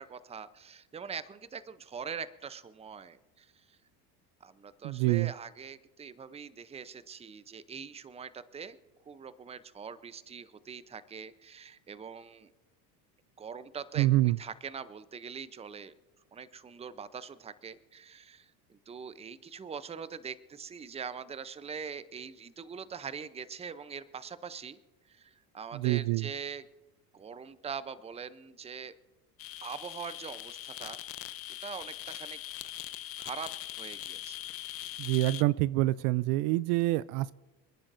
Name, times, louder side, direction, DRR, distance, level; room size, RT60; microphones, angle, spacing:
voice 1, 0.0-3.8 4.4-8.8 9.1-12.5 13.4-15.9 16.3-24.8 25.1-26.7 27.1-28.9 29.6-31.0 31.6-32.8 33.2-33.5 33.8-34.4, right 6 dB, 15° right, 15 dB, 0.6 m, -43 dB
voice 2, 4.8-5.3 14.0-14.4 25.7-26.3 35.0-37.3, right 17 dB, 65° right, 20 dB, 0.5 m, -26 dB
sound 1, 29.4-35.4, left 12 dB, 30° left, 0.5 m, -41 dB
29.0 x 9.8 x 2.6 m, 1.1 s
supercardioid pair, 90°, 49 cm